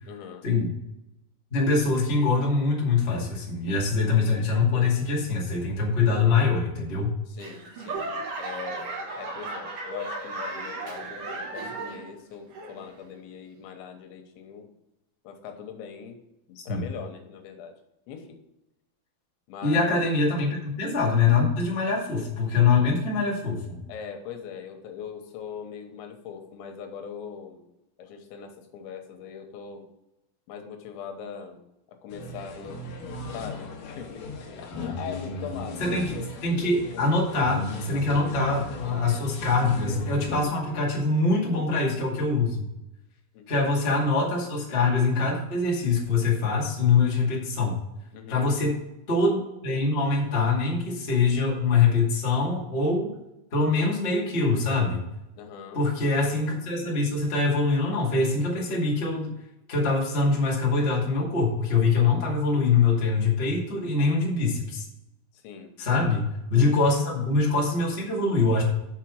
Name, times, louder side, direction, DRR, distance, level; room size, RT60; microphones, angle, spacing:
voice 1, 0.1-0.5 7.3-8.1 8.4-8.9 9.2-14.7 15.2-16.2 16.5-17.7 18.1-18.4 19.5-20.0 23.9-27.6 28.0-29.9 30.5-31.6 32.0-32.8 33.3-34.3 34.6-36.3 36.9-37.1 37.9-38.1 43.3-43.5 48.1-48.5 55.4-55.8 65.3-65.7 66.5-66.7, left 7 dB, 90° left, 5 dB, 3.3 m, -41 dB
voice 2, 1.5-7.1 16.7-16.8 19.6-23.8 35.8-42.7 43.5-47.8 48.3-48.8 49.1-53.1 53.5-55.0 55.7-59.3 59.7-64.8 65.8-66.2 66.5-68.6, left 4 dB, 30° left, -4 dB, 1.1 m, -24 dB
Laughter / Clapping / Crowd, 7.4-12.2 12.5-13.0 13.6-13.7, right 2 dB, 60° right, 2.7 m, -35 dB
sound 1, 32.1-40.4, left 2 dB, 65° left, 2.3 m, -36 dB
6.8 x 5.9 x 6.3 m, 0.89 s
omnidirectional pair, 5.2 m